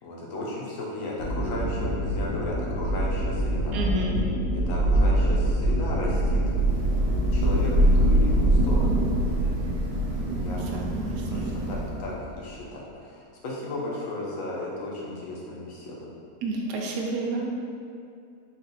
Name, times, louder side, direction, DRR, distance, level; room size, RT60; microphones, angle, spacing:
voice 1, 0.0-3.8 4.5-6.4 7.0-9.0 10.4-10.7 11.3-16.1, left 2 dB, 60° left, -4 dB, 1.1 m, -35 dB
sound 1, 1.2-8.7, right 1 dB, 90° left, 1.2 m, -25 dB
voice 2, 3.7-4.2 5.0-5.1 10.7-11.4 16.4-17.5, right 2 dB, 90° right, 0 dB, 1.2 m, -30 dB
Thunder / Rain, 6.4-12.2, right 1 dB, 65° right, 0.5 m, -24 dB
3.8 x 2.5 x 4.0 m, 2.4 s
omnidirectional pair, 1.7 m